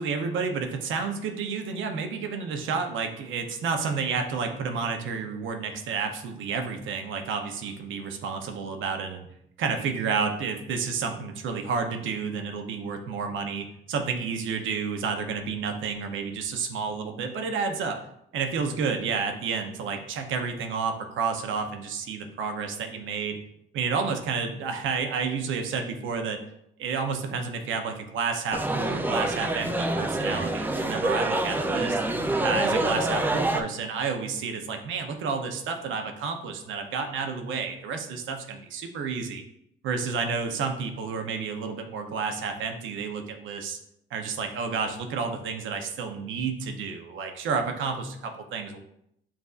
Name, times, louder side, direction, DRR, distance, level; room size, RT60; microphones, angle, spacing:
voice 1, 0.0-9.3 9.6-18.0 18.3-23.4 23.7-26.4 26.8-32.0 32.4-39.4 39.8-43.8 44.1-48.8, right 5 dB, 80° right, 5 dB, 0.7 m, -30 dB
sound 1, 28.5-33.6, right 2 dB, 10° right, 0.4 m, -26 dB
7.2 x 2.6 x 2.4 m, 0.75 s
cardioid pair, 90°, 20 cm